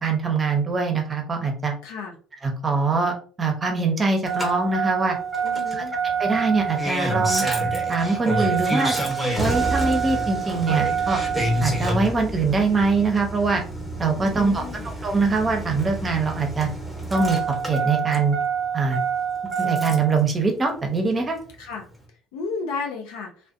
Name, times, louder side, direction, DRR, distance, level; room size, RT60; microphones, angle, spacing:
voice 1, 0.0-1.8 2.4-5.2 5.7-7.4 7.9-9.0 9.4-11.2 11.6-13.6 14.0-16.7 17.1-17.4 17.7-18.3 18.7-19.0 19.6-21.4, right 4 dB, 30° right, 4 dB, 0.7 m, -23 dB
voice 2, 1.8-2.1 5.4-6.0 14.2-14.8 21.6-21.9 22.3-23.3, left 4 dB, 80° left, 2 dB, 0.6 m, -33 dB
Engine starting, 4.2-20.2 21.4-21.5, right 4 dB, ahead, 1.0 m, -26 dB
2.5 x 2.2 x 2.4 m, 0.40 s
hypercardioid pair, 65°, 0 cm